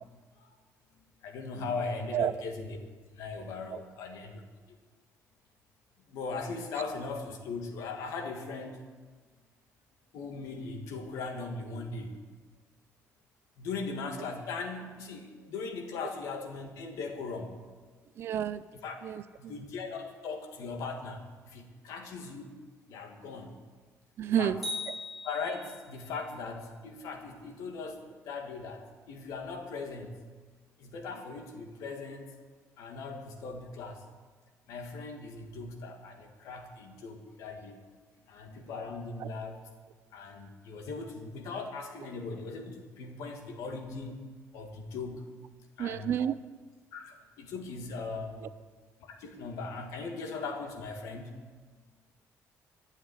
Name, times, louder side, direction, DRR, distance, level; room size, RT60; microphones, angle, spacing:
voice 1, 1.2-2.8 3.1-4.4 6.1-8.8 10.1-12.1 13.6-17.5 18.8-19.0 19.4-22.5 22.9-23.5 24.4-24.5 25.2-30.1 30.8-32.3 32.8-34.0 34.7-37.7 38.3-39.6 40.1-44.2 44.5-45.2 45.8-46.1 46.9-48.4 49.1-51.3, left 4 dB, 75° left, 3 dB, 2.0 m, -39 dB
voice 2, 18.2-18.7 19.0-19.5 24.2-24.6 24.9-25.0 39.2-39.3 45.8-46.4, right 10 dB, 45° right, 15 dB, 0.4 m, -30 dB
sound 1, 24.6-26.0, left 2 dB, ahead, 5.2 m, -39 dB
12.0 x 7.5 x 9.7 m, 1.4 s
cardioid pair, 180°, 6 cm